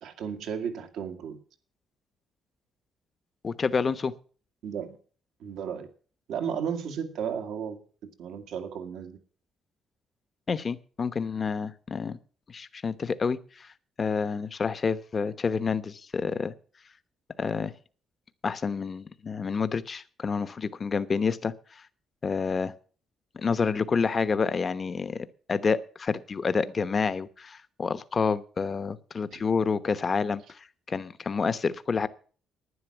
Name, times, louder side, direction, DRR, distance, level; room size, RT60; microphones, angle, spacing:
voice 1, 0.0-1.4 4.6-5.0 5.4-5.9 6.3-7.8 8.2-9.2 29.3-29.5, right 7 dB, 85° right, 7 dB, 2.0 m, -34 dB
voice 2, 3.4-4.1 10.5-12.2 12.5-13.7 14.0-16.5 17.4-17.7 18.4-21.8 22.2-22.7 23.3-32.1, left 5 dB, 40° left, 14 dB, 1.0 m, -28 dB
11.5 x 9.9 x 7.2 m, 0.42 s
cardioid pair, 90°, 0 cm